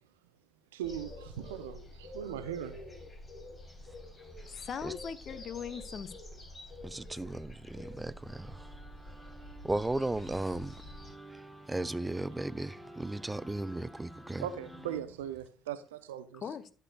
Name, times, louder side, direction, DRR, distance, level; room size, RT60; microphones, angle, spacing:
voice 1, 0.7-2.8 14.4-16.4, right 10 dB, 75° right, 0.6 m, -39 dB
sound 1, 0.8-11.1, left 1 dB, 30° left, 2.8 m, -48 dB
voice 2, 4.5-6.1 7.3-7.4 16.4-16.7, left 7 dB, 50° left, 0.7 m, -40 dB
voice 3, 6.8-8.7 9.1-9.2 9.6-10.8 11.3-14.5, right 2 dB, 15° right, 0.4 m, -36 dB
sound 2, 8.2-15.0, right 1 dB, 5° left, 1.8 m, -52 dB
11.5 x 6.9 x 2.3 m
figure-of-eight pair, 50°, 0 cm